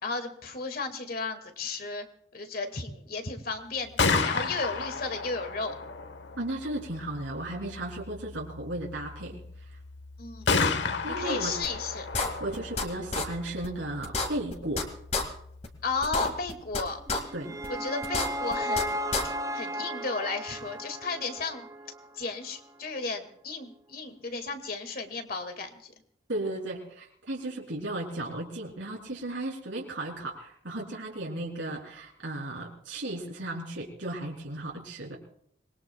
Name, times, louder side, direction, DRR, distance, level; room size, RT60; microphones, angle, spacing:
voice 1, 0.0-2.1 2.3-5.7 10.2-10.5 11.1-12.1 15.8-17.0 17.7-19.0 19.5-21.7 22.2-25.9, left 4 dB, 50° left, 7 dB, 2.0 m, -34 dB
Gunshot gunfire, 3.7-17.6, left 4 dB, 75° left, 1.0 m, -34 dB
voice 2, 6.4-9.8 11.0-11.6 12.4-14.8 17.3-17.6 26.3-35.2, right 1 dB, 85° right, -2 dB, 3.4 m, -35 dB
sound 1, 11.6-11.7 12.1-12.8 13.1-13.3 13.6-13.7 14.0-14.8 15.1-15.2 15.6-15.7 16.0-16.8 17.1-17.2 17.6-17.7 18.0-18.8 19.1-19.2, left 3 dB, 35° left, 2.1 m, -28 dB
sound 2, 17.1-22.2, equal, 20° right, 0.7 m, -35 dB
26.0 x 21.0 x 2.3 m, 0.69 s
head